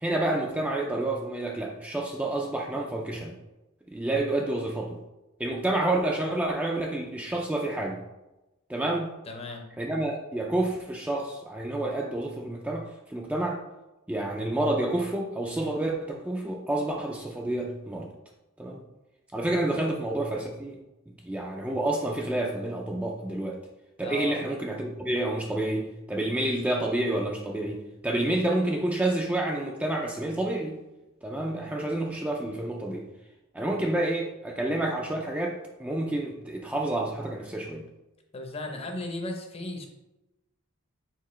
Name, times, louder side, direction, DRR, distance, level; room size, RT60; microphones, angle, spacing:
voice 1, 0.0-3.3 3.9-5.0 5.4-8.0 8.7-9.1 9.8-13.6 14.1-18.1 18.6-18.8 19.3-20.8 21.2-23.6 24.0-30.8 31.2-33.1 33.5-37.8, right 1 dB, 5° right, -1 dB, 0.3 m, -29 dB
voice 2, 9.3-9.7 19.5-19.6 24.0-24.4 38.3-39.9, left 2 dB, 30° left, 3 dB, 0.6 m, -36 dB
4.5 x 3.6 x 3.1 m, 1.0 s
head